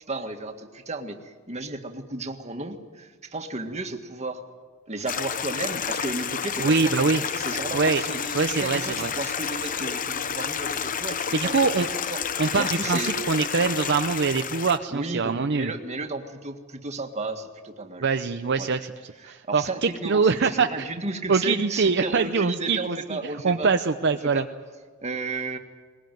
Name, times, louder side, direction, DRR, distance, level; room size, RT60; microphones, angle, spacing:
voice 1, 0.1-4.4 4.9-12.2 12.6-13.1 14.9-18.1 18.6-18.7 19.2-23.7 24.3-24.5 25.0-25.6, right 2 dB, 35° right, 5 dB, 1.8 m, -33 dB
Stream, 5.1-14.8, left 7 dB, 40° left, 0.8 m, -30 dB
voice 2, 6.6-7.2 7.7-8.0 8.3-9.1 11.3-11.9 12.4-15.7 18.0-18.9 19.2-20.9 21.3-24.4, right 4 dB, 55° right, 7 dB, 0.7 m, -24 dB
21.0 x 20.5 x 9.2 m, 1.5 s
head